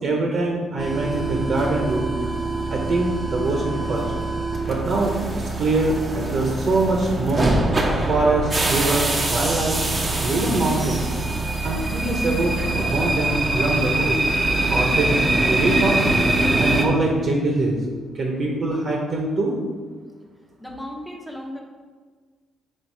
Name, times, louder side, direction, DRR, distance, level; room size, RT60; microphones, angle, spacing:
voice 1, 0.0-2.1 2.7-4.1 4.7-7.5 8.1-9.8 10.2-11.1 11.6-14.2 14.7-15.1 15.5-16.0 16.6-17.8 18.1-19.5, right 2 dB, 55° right, 0 dB, 1.0 m, -23 dB
sound 1, 0.8-16.9, right 2 dB, 30° right, 0.8 m, -23 dB
voice 2, 20.6-21.6, left 1 dB, ahead, 1 dB, 0.9 m, -35 dB
4.6 x 4.5 x 4.7 m, 1.5 s
cardioid pair, 90°, 0 cm